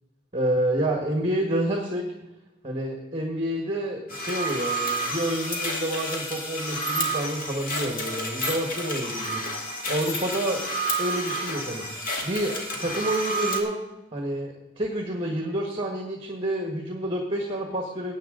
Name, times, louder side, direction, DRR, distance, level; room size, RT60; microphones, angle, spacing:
voice 1, 0.3-2.1 2.6-10.6 11.0-11.9 12.2-13.8 14.1-18.1, right 1 dB, 30° right, 2 dB, 1.4 m, -28 dB
sound 1, 4.1-13.6, right 1 dB, 50° left, 2.1 m, -30 dB
19.0 x 8.4 x 3.8 m, 0.98 s
head